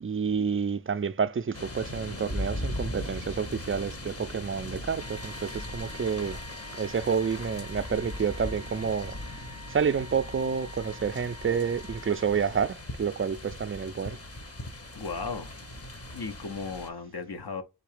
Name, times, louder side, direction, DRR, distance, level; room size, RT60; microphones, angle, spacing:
voice 1, 0.0-6.4 6.7-14.2, right 6 dB, 30° right, 0.4 m, -29 dB
sound 1, 1.5-16.9, left 1 dB, 35° left, 0.9 m, -39 dB
sound 2, 5.0-12.8, left 1 dB, 80° left, 1.0 m, -48 dB
voice 2, 14.9-15.5 16.1-17.6, left 4 dB, 65° left, 0.7 m, -35 dB
4.0 x 2.8 x 4.8 m
wide cardioid pair, 45°, 42 cm